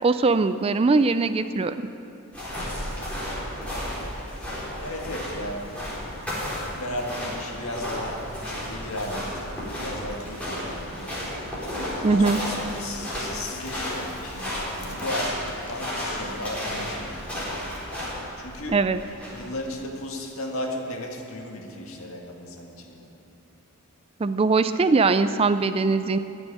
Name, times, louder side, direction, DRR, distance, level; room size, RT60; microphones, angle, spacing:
voice 1, 0.0-1.8 12.0-12.4 18.7-19.0 24.2-26.2, right 3 dB, 25° right, 11 dB, 0.3 m, -21 dB
sound 1, 2.3-19.6, equal, 5° left, 4.2 m, -33 dB
voice 2, 4.8-5.7 6.7-11.2 11.8-15.3 15.7-17.7 18.4-18.8 19.3-23.1, left 1 dB, 70° left, 1 dB, 1.9 m, -35 dB
Breathing, 12.5-17.5, left 2 dB, 85° left, 1.8 m, -43 dB
15.5 x 6.3 x 9.9 m, 2.7 s
head